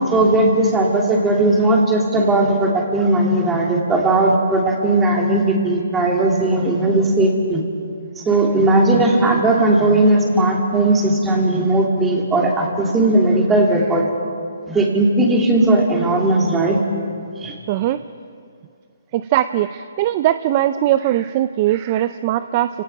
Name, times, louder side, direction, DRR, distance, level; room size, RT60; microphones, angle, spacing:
voice 1, 0.0-7.6 8.2-14.0 14.7-16.8 17.4-17.5, right 2 dB, 10° right, -1 dB, 2.9 m, -17 dB
voice 2, 17.7-18.0 19.1-22.7, right 13 dB, 35° right, 12 dB, 0.5 m, -20 dB
29.5 x 18.0 x 5.9 m, 2.3 s
hypercardioid pair, 155°, 0 cm